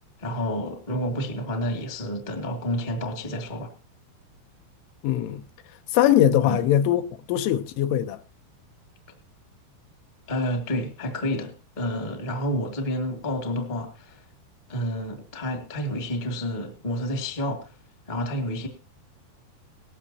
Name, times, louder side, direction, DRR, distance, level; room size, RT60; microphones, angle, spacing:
voice 1, 0.2-3.7 6.4-6.6 10.3-14.2 14.7-17.6 18.1-18.7, equal, 40° left, 0.6 m, -29 dB
voice 2, 5.0-5.4 5.9-7.0 7.3-8.2, left 11 dB, 90° left, 3.5 m, -21 dB
18.5 x 14.5 x 2.9 m
omnidirectional pair, 5.4 m